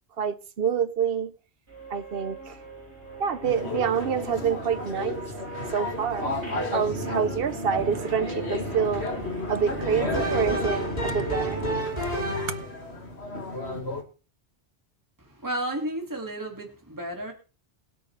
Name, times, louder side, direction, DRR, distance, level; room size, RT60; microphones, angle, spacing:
voice 1, 0.2-1.3 1.9-2.6 3.2-5.2 5.7-6.3 6.7-9.1 9.5-11.6, right 7 dB, 60° right, 1.0 m, -27 dB
sound 1, 1.7-11.8, right 2 dB, 80° right, 3.7 m, -37 dB
sound 2, 3.4-14.0, left 2 dB, 70° left, 2.3 m, -34 dB
sound 3, 9.5-12.8, equal, 35° left, 3.9 m, -31 dB
voice 2, 15.2-17.3, right 1 dB, 15° right, 2.2 m, -32 dB
21.5 x 8.3 x 3.3 m
omnidirectional pair, 1.2 m